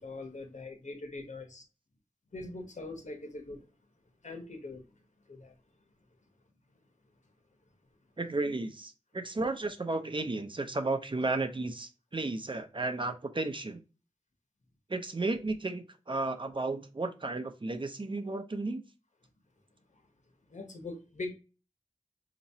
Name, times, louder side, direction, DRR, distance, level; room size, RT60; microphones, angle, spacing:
voice 1, 0.0-1.6 2.3-3.7 4.2-4.8 5.3-5.5 20.5-21.3, left 2 dB, 85° left, 1.0 m, -42 dB
voice 2, 8.2-13.8 14.9-18.8, right 2 dB, 45° right, 0.7 m, -33 dB
4.3 x 3.0 x 2.7 m
wide cardioid pair, 45°, 12 cm